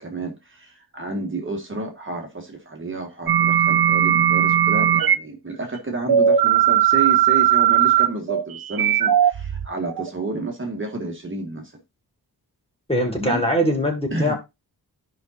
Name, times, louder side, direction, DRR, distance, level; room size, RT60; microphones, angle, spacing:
voice 1, 0.0-11.7 13.1-13.4 14.1-14.4, right 3 dB, 30° right, 1.6 m, -30 dB
sound 1, 3.3-5.2 6.1-10.1, right 10 dB, 65° right, 0.7 m, -18 dB
voice 2, 12.9-14.4, equal, 15° left, 2.0 m, -22 dB
13.5 x 5.4 x 2.6 m
wide cardioid pair, 165°, 39 cm